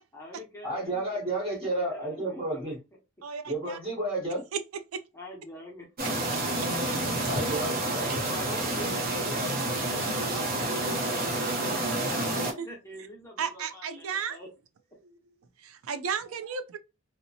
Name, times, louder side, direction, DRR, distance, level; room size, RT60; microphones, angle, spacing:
voice 1, 0.1-2.7 5.1-6.2 8.0-14.5, equal, 15° left, 0.7 m, -44 dB
voice 2, 0.6-2.8 3.4-4.5 7.2-8.4 8.8-8.9 9.3-9.5, right 1 dB, 30° right, 1.1 m, -32 dB
voice 3, 3.2-3.8 4.5-4.6 4.9-5.0 6.3-7.0 11.6-11.7 12.6-12.7 13.4-14.4 15.0-15.2 15.6-16.8, right 7 dB, 80° right, 0.4 m, -34 dB
sound 1, 6.0-12.5, right 1 dB, 45° right, 0.7 m, -29 dB
2.8 x 2.0 x 2.7 m
head